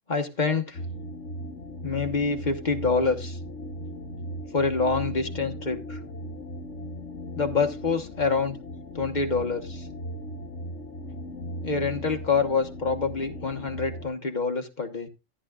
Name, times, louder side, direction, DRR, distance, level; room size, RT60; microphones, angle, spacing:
voice 1, 0.1-0.8 1.8-3.4 4.5-6.0 7.3-8.6 8.9-9.9 11.6-15.1, left 4 dB, 35° left, 5 dB, 1.2 m, -26 dB
sound 1, 0.7-14.1, equal, 65° left, 1.5 m, -37 dB
14.0 x 10.0 x 2.4 m, 0.25 s
omnidirectional pair, 1.3 m